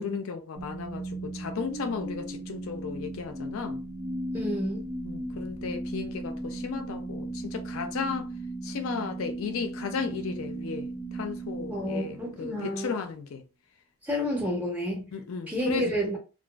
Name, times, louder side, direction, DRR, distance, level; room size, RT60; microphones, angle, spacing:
voice 1, 0.0-3.8 5.0-8.3 8.6-13.4 15.1-15.9, left 5 dB, 65° left, 0.4 m, -35 dB
sound 1, 0.6-12.7, right 2 dB, 90° right, 0.6 m, -36 dB
voice 2, 4.3-4.9 11.7-12.9 14.0-15.0 15.5-16.2, equal, 5° right, 0.5 m, -30 dB
2.4 x 2.3 x 2.2 m
head